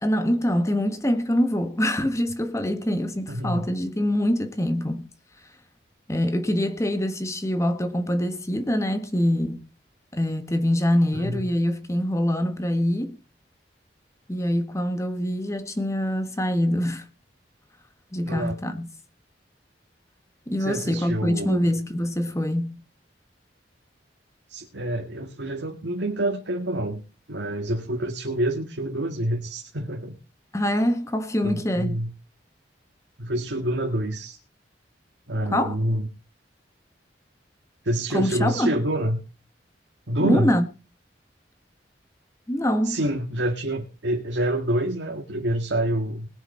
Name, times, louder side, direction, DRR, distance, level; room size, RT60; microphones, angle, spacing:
voice 1, 0.0-5.1 6.1-9.7 10.1-13.2 14.3-17.1 18.1-18.9 20.5-22.8 30.5-31.9 35.4-35.8 38.1-38.7 40.2-40.6 42.5-43.0, equal, 15° left, 1.4 m, -24 dB
voice 2, 3.3-3.7 11.1-11.4 18.2-18.6 20.6-21.7 24.5-27.0 27.3-30.2 31.4-32.1 33.2-34.4 35.3-36.1 37.8-39.2 40.1-40.5 42.8-46.3, right 1 dB, 85° right, 2.0 m, -27 dB
21.0 x 7.0 x 4.4 m
head